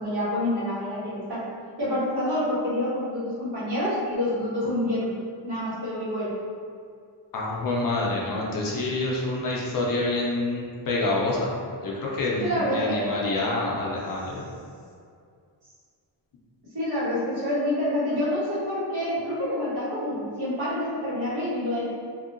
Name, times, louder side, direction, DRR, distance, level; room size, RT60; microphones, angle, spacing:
voice 1, 0.0-1.4 1.8-5.1 5.4-6.3 12.4-13.0 13.3-13.5 13.9-14.0 16.7-21.9, left 1 dB, 60° right, -11 dB, 1.4 m, -27 dB
voice 2, 7.3-11.5 11.8-14.4, left 2 dB, 50° left, -3 dB, 0.5 m, -27 dB
2.8 x 2.7 x 2.5 m, 2.3 s
wide cardioid pair, 165°, 44 cm